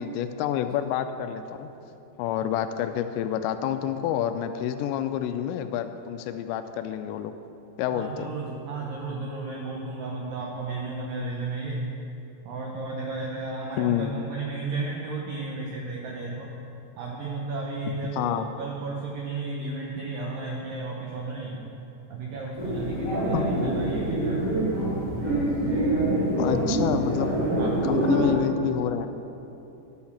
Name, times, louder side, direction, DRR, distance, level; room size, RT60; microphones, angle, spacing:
voice 1, 0.0-1.7 2.2-7.3 7.8-8.3 13.8-14.1 17.9-18.5 23.3-23.5 25.9-26.0 26.4-27.3 27.8-29.1, left 10 dB, 85° left, 9 dB, 2.7 m, -28 dB
voice 2, 7.9-11.9 12.4-16.5 17.0-21.6 22.1-24.5 27.6-27.8, right 3 dB, 80° right, -1 dB, 2.0 m, -33 dB
sound 1, 22.6-28.3, right 1 dB, 10° right, 1.6 m, -25 dB
11.5 x 6.4 x 7.1 m, 2.9 s
omnidirectional pair, 5.2 m